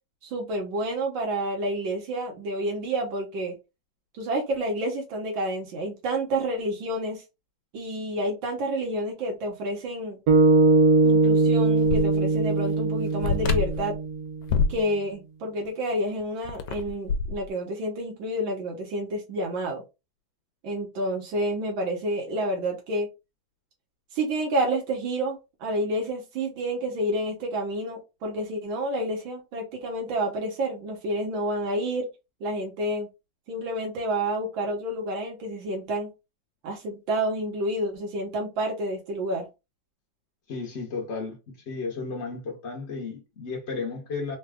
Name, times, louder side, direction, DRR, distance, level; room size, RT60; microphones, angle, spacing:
voice 1, 0.2-3.5 4.1-7.2 7.7-10.2 11.0-14.0 14.7-19.8 20.6-23.1 24.1-32.1 32.4-33.1 33.5-36.1 36.6-39.5, right 1 dB, 85° right, 1.8 m, -29 dB
sound 1, 10.3-14.6, right 3 dB, 60° right, 1.2 m, -21 dB
sound 2, 11.9-12.0 12.4-12.5 13.2-13.9 14.5-14.8 16.2-17.4, left 4 dB, 75° left, 1.2 m, -25 dB
voice 2, 40.5-44.4, left 4 dB, 50° left, 0.9 m, -33 dB
4.0 x 2.2 x 3.4 m
omnidirectional pair, 2.1 m